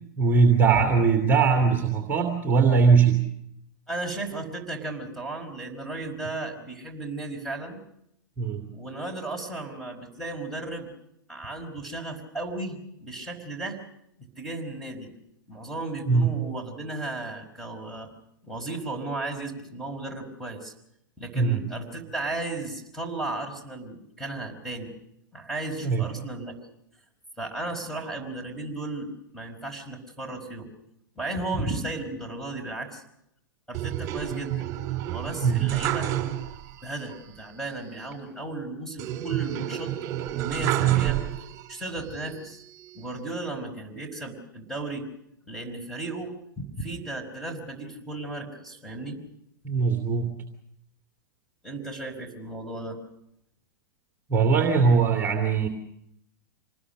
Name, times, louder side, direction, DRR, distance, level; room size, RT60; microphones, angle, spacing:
voice 1, 0.2-3.2 8.4-8.6 16.1-16.3 21.3-21.6 25.8-26.0 35.4-35.6 49.6-50.3 54.3-55.7, right 5 dB, 15° right, 3 dB, 2.6 m, -20 dB
voice 2, 3.9-7.8 8.7-10.9 11.3-13.8 14.4-15.1 15.5-18.1 18.4-20.7 21.2-24.9 25.3-26.5 27.4-30.7 31.2-33.0 33.7-34.7 35.1-36.1 36.8-39.9 40.4-41.2 41.7-42.6 42.9-45.1 45.5-49.2 51.6-53.0, right 2 dB, 5° left, 4 dB, 4.9 m, -35 dB
sound 1, 33.7-36.8 37.1-37.2 39.0-41.7 42.3-43.1, right 13 dB, 35° right, 3.4 m, -28 dB
26.5 x 20.0 x 6.6 m, 0.78 s
figure-of-eight pair, 105°, 11 cm